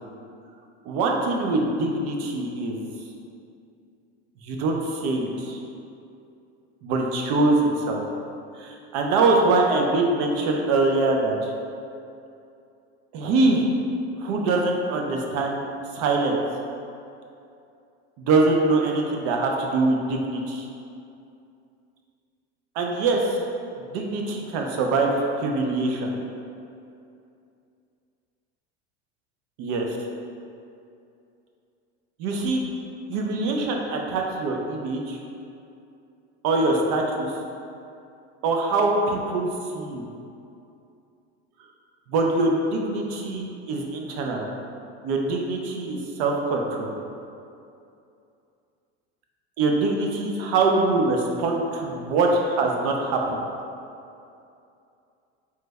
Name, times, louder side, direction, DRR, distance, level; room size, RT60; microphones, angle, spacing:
voice 1, 0.9-2.9 4.4-5.6 6.8-8.0 8.6-11.5 13.1-13.7 14.2-15.6 15.9-16.4 18.2-20.7 22.8-23.4 23.9-25.1 25.4-26.1 29.6-30.0 32.2-32.6 33.1-35.2 36.4-37.3 38.4-40.1 42.1-44.5 45.0-46.9 49.6-53.4, right 3 dB, 60° right, 1 dB, 0.5 m, -23 dB
3.2 x 2.1 x 3.4 m, 2.6 s
supercardioid pair, 125°, 32 cm